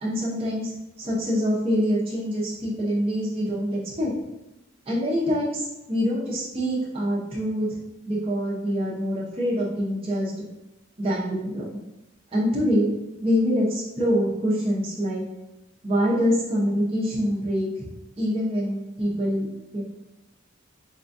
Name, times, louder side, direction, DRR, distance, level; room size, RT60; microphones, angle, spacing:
voice 1, 0.0-4.1 4.9-7.8 8.1-10.3 11.0-11.7 12.3-12.9 13.2-15.2 15.8-17.9 18.2-19.5 19.7-19.8, equal, 30° right, -6 dB, 0.7 m, -25 dB
4.4 x 2.3 x 2.6 m, 0.97 s
head